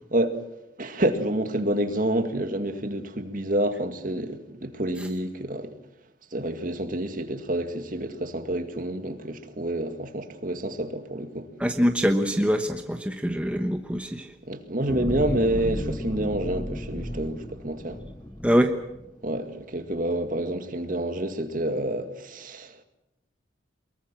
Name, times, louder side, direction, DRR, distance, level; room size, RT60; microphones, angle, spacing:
voice 1, 0.8-5.7 6.3-11.5 14.5-18.0 19.2-22.8, right 1 dB, 45° right, 2.1 m, -28 dB
voice 2, 11.6-14.3 18.4-18.7, equal, 5° right, 1.1 m, -24 dB
sound 1, 14.9-19.4 19.9-20.0, left 1 dB, 15° left, 0.8 m, -34 dB
23.5 x 22.0 x 7.5 m
head